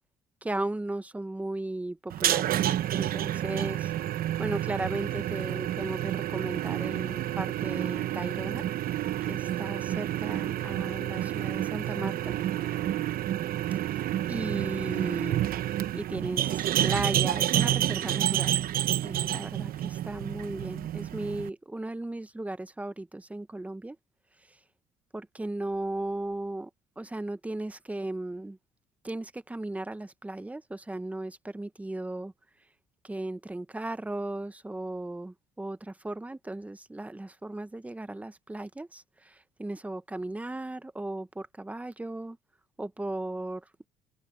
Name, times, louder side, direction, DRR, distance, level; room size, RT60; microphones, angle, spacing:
voice 1, 0.4-3.9 4.4-8.6 9.3-12.3 13.7-14.0 14.3-15.4 15.9-18.6 19.0-24.0 24.5-24.6 25.1-26.7 27.0-28.6 29.0-32.3 33.0-42.4 42.8-43.6, right 2 dB, 10° right, 0.8 m, -36 dB
sound 1, 2.1-21.5, right 12 dB, 60° right, 0.9 m, -29 dB
cardioid pair, 110°, 17 cm